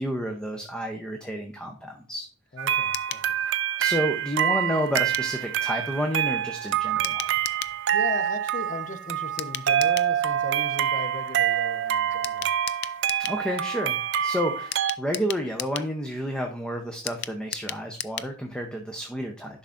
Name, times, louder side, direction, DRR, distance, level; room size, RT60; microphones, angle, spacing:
voice 1, 0.0-2.3 3.8-7.4 13.2-19.6, equal, 5° left, 0.6 m, -30 dB
voice 2, 2.5-3.4 7.9-12.5, left 3 dB, 40° left, 0.8 m, -37 dB
sound 1, 2.6-15.0, right 10 dB, 60° right, 0.4 m, -26 dB
sound 2, 2.9-3.3 5.0-5.3 7.0-7.8 9.4-10.1 12.2-13.4 14.7-15.9 17.1-18.3 18.6-18.7 19.0-19.1, left 11 dB, 55° left, 0.4 m, -35 dB
10.5 x 5.5 x 2.5 m
head